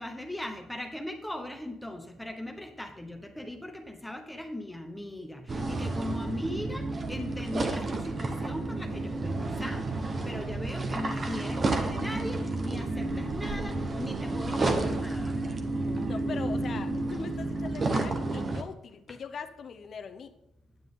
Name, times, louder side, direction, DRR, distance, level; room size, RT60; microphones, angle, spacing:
voice 1, 0.0-15.4 19.1-19.2, left 1 dB, 5° left, 4 dB, 1.1 m, -39 dB
sound 1, 5.5-18.6, right 2 dB, 40° right, 1.2 m, -31 dB
voice 2, 16.0-20.3, left 6 dB, 55° left, 8 dB, 0.7 m, -41 dB
9.5 x 7.5 x 3.8 m, 0.78 s
cardioid pair, 95°, 0 cm